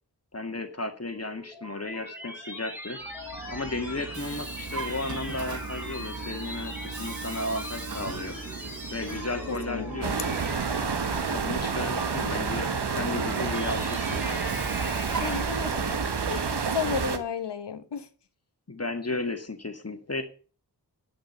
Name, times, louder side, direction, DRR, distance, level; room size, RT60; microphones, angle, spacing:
voice 1, 0.3-3.0 3.5-8.4 8.9-10.4 11.1-12.7 13.0-14.4 18.7-20.2, left 2 dB, 35° left, 2.0 m, -34 dB
sound 1, 1.1-15.8, equal, 5° right, 6.3 m, -40 dB
Vehicle, 3.0-11.5 13.2-17.1, right 4 dB, 45° right, 1.2 m, -39 dB
voice 2, 9.5-10.2 15.2-16.0 16.3-18.1, left 7 dB, 85° left, 1.2 m, -33 dB
sound 2, 10.0-17.2, right 5 dB, 80° right, 1.3 m, -29 dB
10.5 x 6.4 x 7.8 m
cardioid pair, 50°, 40 cm